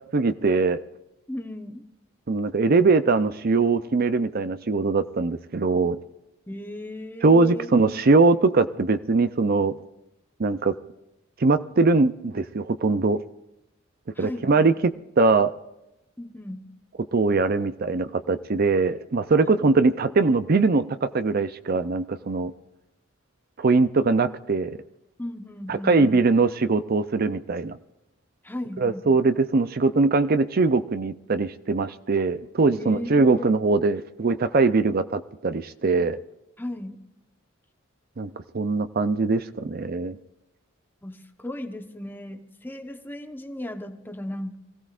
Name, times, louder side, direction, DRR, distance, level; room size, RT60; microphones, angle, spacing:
voice 1, 0.1-0.8 2.3-6.0 7.2-9.7 10.4-10.7 11.4-13.2 14.2-14.7 15.2-15.5 17.1-22.5 23.6-24.7 25.7-27.8 28.8-36.2 38.2-38.3 38.5-40.2, right 3 dB, 50° right, 11 dB, 0.5 m, -21 dB
voice 2, 1.3-1.8 6.5-7.7 14.2-14.7 16.2-16.6 19.5-19.7 25.2-26.2 28.4-29.2 32.8-33.5 36.6-37.0 41.0-44.6, left 1 dB, 10° left, 6 dB, 1.0 m, -36 dB
24.0 x 16.0 x 2.5 m, 0.91 s
head